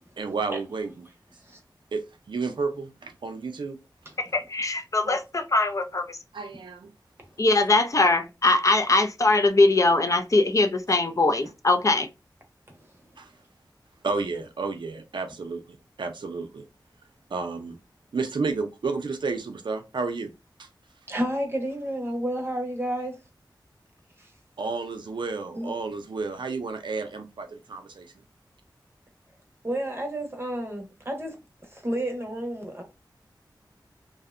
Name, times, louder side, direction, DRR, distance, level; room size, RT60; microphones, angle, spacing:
voice 1, 0.2-1.0 1.9-3.8 5.0-5.2 6.3-6.9 13.2-13.3 14.0-16.6 17.3-17.8 18.1-20.3 20.6-20.7 24.6-28.1, right 4 dB, 75° right, 0.4 m, -31 dB
voice 2, 4.2-6.2 7.4-12.1, left 2 dB, 40° left, 0.4 m, -22 dB
voice 3, 21.1-23.2 25.5-25.7 29.6-31.4 31.7-32.8, right 1 dB, 30° right, 0.7 m, -30 dB
2.6 x 2.1 x 2.4 m
wide cardioid pair, 60°, 8 cm